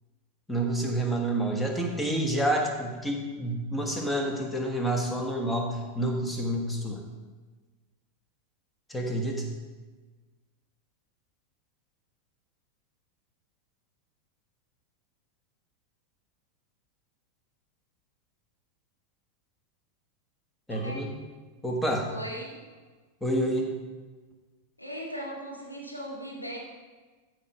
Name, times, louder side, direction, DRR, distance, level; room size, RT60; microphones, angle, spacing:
voice 1, 0.5-7.0 8.9-9.4 20.7-21.1 21.6-22.1 23.2-23.7, right 1 dB, 5° left, 1 dB, 1.5 m, -28 dB
voice 2, 22.1-22.6 24.8-26.6, equal, 85° left, -2 dB, 2.1 m, -38 dB
13.5 x 5.1 x 4.4 m, 1.3 s
figure-of-eight pair, 90°, 0 cm